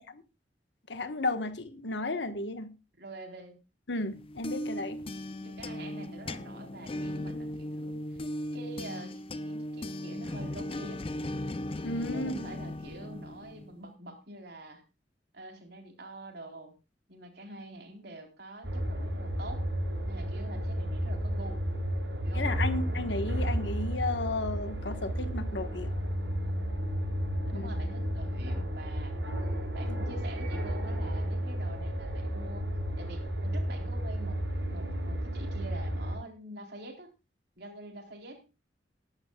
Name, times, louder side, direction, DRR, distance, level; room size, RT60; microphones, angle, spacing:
voice 1, 0.9-2.7 3.9-5.0 11.8-12.5 22.3-25.9 27.5-27.7 29.9-30.0, left 2 dB, 75° left, 1.4 m, -33 dB
voice 2, 3.0-3.6 5.4-8.2 8.5-11.0 12.1-14.8 15.3-16.7 17.1-19.7 20.1-21.6 22.2-22.5 27.5-29.2 29.7-32.7 33.0-34.4 34.7-37.1 37.6-38.4, right 1 dB, 65° right, 3.9 m, -46 dB
sound 1, 4.1-13.8, left 1 dB, 30° left, 0.6 m, -37 dB
sound 2, 18.6-36.2, equal, 90° right, 7.0 m, -32 dB
19.5 x 11.5 x 2.4 m
head